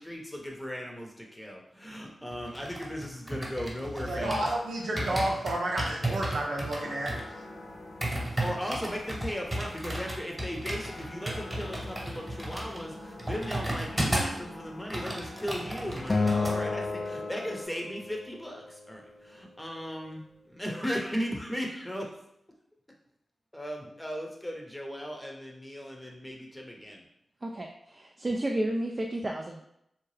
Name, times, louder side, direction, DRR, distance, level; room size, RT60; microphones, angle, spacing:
voice 1, 0.0-4.5 5.0-5.2 8.4-20.2 20.5-22.1 23.5-27.0, equal, 10° left, 0 dB, 0.7 m, -37 dB
sound 1, 2.3-4.6 5.0-14.4 14.7-16.6 16.8-17.1, right 1 dB, 20° right, 1.1 m, -34 dB
voice 2, 4.1-7.1, right 1 dB, 85° right, -2 dB, 0.6 m, -30 dB
sound 2, 6.8-17.7, left 2 dB, 85° left, 0.6 m, -45 dB
Acoustic guitar, 16.1-18.5, left 3 dB, 40° left, 0.4 m, -30 dB
voice 3, 27.4-29.7, right 1 dB, 35° right, 1 dB, 0.3 m, -32 dB
2.8 x 2.2 x 3.2 m, 0.77 s
cardioid pair, 45°, 0 cm